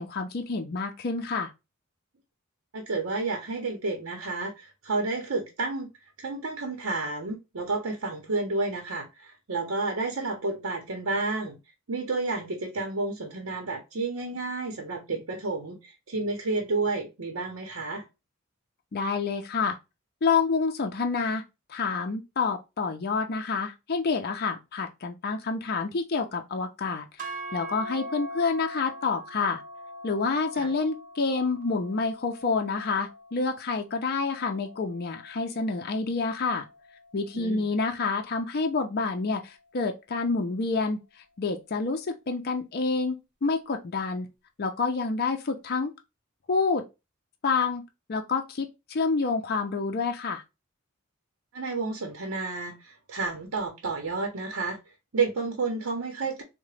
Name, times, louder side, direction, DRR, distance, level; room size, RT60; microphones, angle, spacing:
voice 1, 0.0-1.5 18.9-19.8 20.2-21.4 21.7-27.1 27.5-29.6 30.0-36.7 37.1-41.0 41.4-44.3 44.6-45.9 46.5-46.8 47.4-47.8 48.1-50.4, left 4 dB, 50° left, 0.5 m, -28 dB
voice 2, 2.7-5.9 6.2-11.6 11.9-18.0 30.6-30.7 37.3-37.7 51.5-54.8 55.1-56.4, right 3 dB, 75° right, 0.8 m, -31 dB
sound 1, 27.2-35.4, equal, 40° right, 0.7 m, -42 dB
3.7 x 2.1 x 3.1 m
head